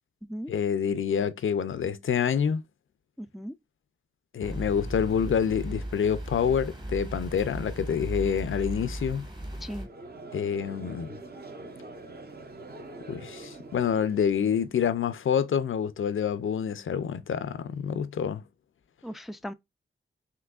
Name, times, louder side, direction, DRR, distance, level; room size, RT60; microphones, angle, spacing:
voice 1, 0.5-2.6 4.3-9.2 10.3-11.2 13.1-18.4, left 7 dB, 70° left, 0.5 m, -27 dB
voice 2, 3.2-3.5 9.6-9.9 19.0-19.5, equal, ahead, 0.3 m, -37 dB
sound 1, 4.4-9.9, right 1 dB, 20° right, 1.1 m, -36 dB
Conversation / Crowd, 9.6-14.9, right 2 dB, 50° right, 1.0 m, -45 dB
5.9 x 3.1 x 2.4 m
wide cardioid pair, 150°, 21 cm